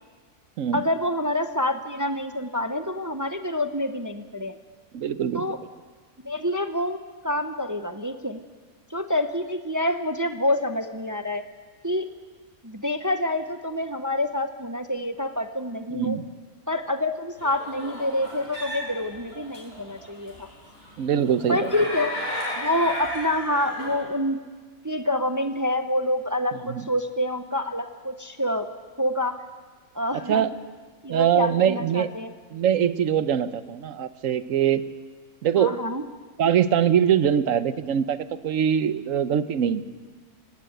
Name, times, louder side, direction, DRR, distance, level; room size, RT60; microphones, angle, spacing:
voice 1, 0.7-4.6 5.3-5.6 6.2-8.4 8.9-11.4 11.8-12.1 12.6-16.2 16.7-20.5 21.5-22.1 22.6-24.4 24.8-28.7 29.0-29.4 29.9-30.4 31.0-32.3 35.6-36.0, left 1 dB, 20° right, 8 dB, 0.6 m, -27 dB
voice 2, 4.9-5.5 15.9-16.3 21.0-21.7 26.6-26.9 30.1-30.5 31.1-32.1 32.5-34.8 35.4-35.7 36.4-38.2 38.4-39.8, right 9 dB, 65° right, 13 dB, 1.2 m, -23 dB
sound 1, 17.4-24.0, equal, 40° left, 6.6 m, -34 dB
18.5 x 18.0 x 7.9 m, 1.4 s
omnidirectional pair, 1.5 m